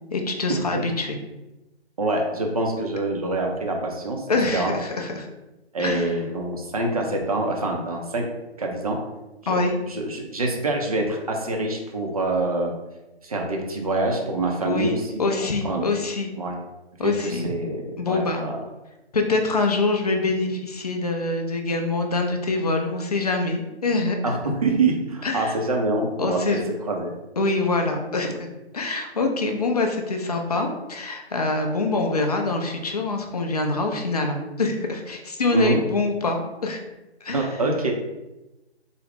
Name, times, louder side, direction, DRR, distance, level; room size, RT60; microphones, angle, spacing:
voice 1, 0.1-1.2 4.3-5.3 5.8-6.1 9.5-9.8 14.6-14.9 15.2-16.3 17.0-17.4 18.0-18.4 19.1-24.4 25.2-25.6 26.2-26.6 27.4-36.8 37.2-37.5, left 3 dB, 35° left, 3 dB, 0.4 m, -25 dB
voice 2, 2.0-4.3 4.5-4.7 5.7-8.3 8.6-9.0 9.9-12.7 13.2-15.0 15.4-15.9 16.4-16.6 17.0-18.6 24.2-26.6 26.9-27.1 35.5-35.8 37.3-37.9, right 2 dB, 35° right, 1 dB, 0.5 m, -25 dB
3.8 x 2.0 x 3.4 m, 1.0 s
figure-of-eight pair, 145°, 33 cm